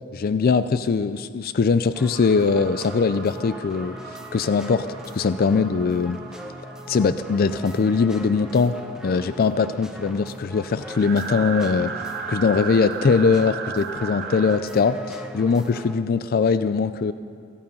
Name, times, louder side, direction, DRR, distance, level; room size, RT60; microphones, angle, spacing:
voice 1, 0.1-4.0 4.3-4.9 5.1-6.2 6.9-8.8 9.0-11.9 12.3-17.1, left 5 dB, 45° left, 12 dB, 0.4 m, -21 dB
sound 1, 1.9-16.0, equal, 5° right, 0.9 m, -40 dB
sound 2, 2.1-14.6, right 6 dB, 50° right, 0.9 m, -37 dB
27.0 x 9.2 x 5.4 m, 2.1 s
head